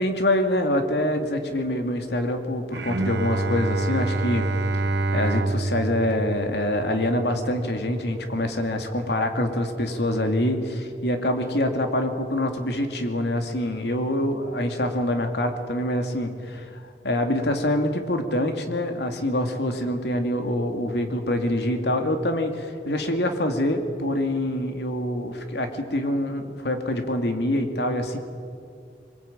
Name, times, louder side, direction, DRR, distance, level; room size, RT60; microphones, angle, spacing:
voice 1, 0.0-4.5 5.1-16.7 17.0-28.2, left 1 dB, 75° left, 5 dB, 2.5 m, -25 dB
Bowed string instrument, 2.7-8.0, right 2 dB, 85° right, 1.3 m, -27 dB
23.5 x 21.0 x 8.9 m, 2.4 s
head